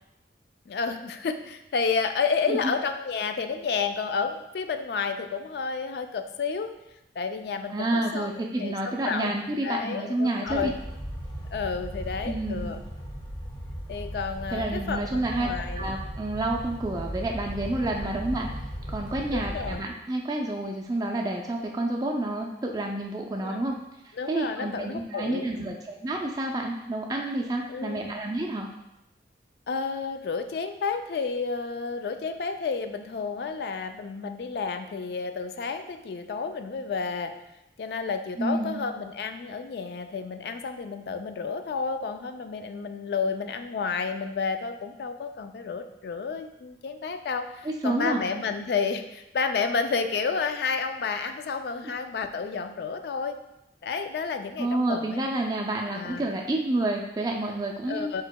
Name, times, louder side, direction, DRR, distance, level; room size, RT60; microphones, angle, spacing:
voice 1, 0.7-6.7 7.2-10.7 11.5-12.8 13.9-15.9 18.0-18.1 19.3-19.8 23.4-23.6 24.1-25.8 27.7-28.1 29.7-37.3 37.8-53.4 53.8-55.2 55.9-56.3 57.9-58.2, left 5 dB, 65° left, 8 dB, 0.3 m, -31 dB
voice 2, 7.7-10.7 12.3-12.7 14.5-18.5 18.9-23.7 24.0-28.7 38.4-38.8 47.6-48.2 54.6-58.1, right 2 dB, 20° right, 0 dB, 0.3 m, -29 dB
sound 1, 10.5-19.8, equal, 25° left, 1.0 m, -36 dB
4.7 x 4.3 x 2.2 m, 0.90 s
head